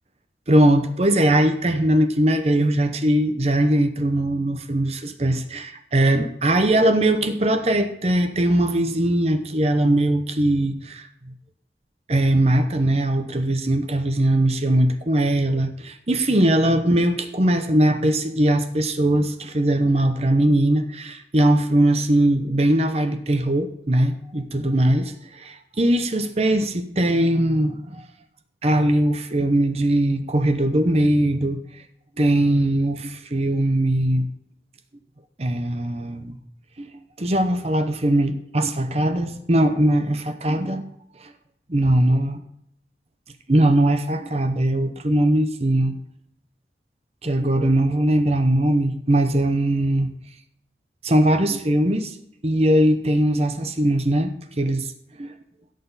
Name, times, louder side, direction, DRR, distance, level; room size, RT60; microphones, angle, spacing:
voice 1, 0.5-11.1 12.1-28.0 28.6-31.6 32.2-34.3 35.4-36.4 36.8-36.9 37.2-40.8 41.2-41.3 41.7-42.4 43.5-45.9 47.2-50.1 51.0-52.2 52.4-54.9 55.2-55.3, right 1 dB, 35° right, 8 dB, 0.9 m, -20 dB
16.5 x 6.6 x 4.1 m, 0.74 s
head